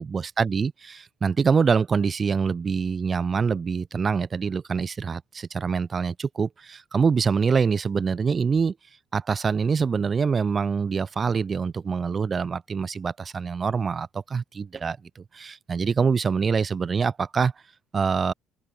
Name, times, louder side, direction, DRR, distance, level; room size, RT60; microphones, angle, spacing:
voice 1, 0.0-8.7 9.1-17.5 17.9-18.3, right 5 dB, 30° right, 4.2 m, -25 dB
open air
cardioid pair, 120°, 0 cm